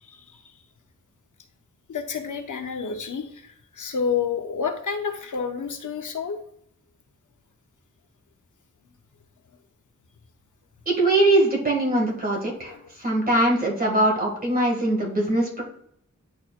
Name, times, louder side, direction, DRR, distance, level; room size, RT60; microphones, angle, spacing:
voice 1, 0.0-0.4 1.9-6.4 12.7-12.8, left 6 dB, 80° left, 5 dB, 0.8 m, -29 dB
voice 2, 10.9-12.7 13.0-15.6, right 1 dB, 30° right, -2 dB, 2.1 m, -21 dB
10.0 x 4.4 x 2.5 m, 0.68 s
wide cardioid pair, 90°, 30 cm